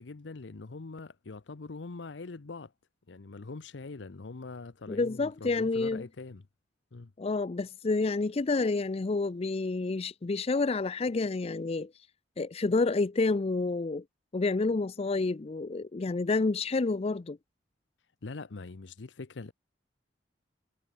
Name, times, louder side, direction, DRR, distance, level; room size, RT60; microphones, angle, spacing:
voice 1, 0.0-2.7 3.1-6.4 6.9-7.1 18.2-19.5, left 3 dB, 80° left, 0.8 m, -43 dB
voice 2, 4.9-6.0 7.2-11.9 12.4-14.0 14.3-17.4, left 3 dB, 35° left, 0.5 m, -29 dB
head